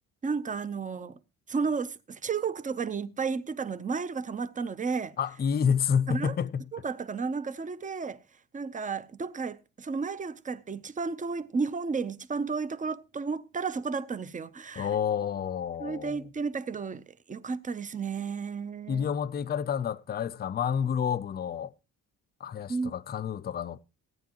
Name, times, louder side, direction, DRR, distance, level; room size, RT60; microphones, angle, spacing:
voice 1, 0.2-1.2 1.5-5.2 6.1-6.4 6.7-8.2 8.5-14.9 15.8-19.1 22.7-22.9, right 5 dB, 25° right, 0.6 m, -33 dB
voice 2, 5.2-6.6 14.8-16.3 18.9-21.7 22.4-23.8, left 7 dB, 30° left, 0.5 m, -29 dB
16.5 x 9.4 x 3.0 m
cardioid pair, 125°, 34 cm